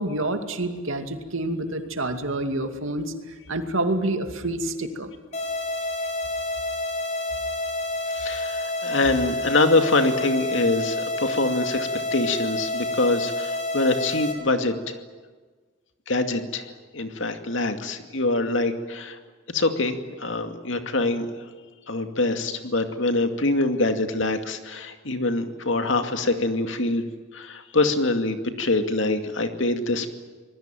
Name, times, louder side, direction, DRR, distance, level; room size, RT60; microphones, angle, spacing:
voice 1, 0.0-3.1 3.5-5.1, right 2 dB, 80° right, 6 dB, 2.5 m, -27 dB
sound 1, 5.3-14.3, left 2 dB, 35° left, 4.5 m, -29 dB
voice 2, 8.1-15.0 16.1-19.2 19.5-21.5 21.9-27.0 27.3-30.1, left 2 dB, 70° left, 6 dB, 2.4 m, -24 dB
26.5 x 20.0 x 9.2 m, 1.4 s
head